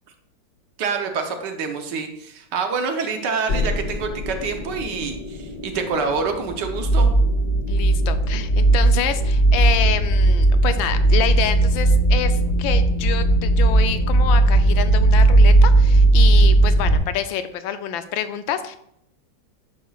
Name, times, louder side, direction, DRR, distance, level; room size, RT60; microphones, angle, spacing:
voice 1, 0.8-7.1, right 5 dB, 70° right, 5 dB, 1.4 m, -26 dB
sound 1, 3.5-17.0, right 2 dB, 60° left, 2.0 m, -17 dB
voice 2, 7.7-18.8, left 9 dB, 85° left, 10 dB, 1.4 m, -27 dB
10.0 x 6.4 x 2.3 m, 0.75 s
omnidirectional pair, 2.1 m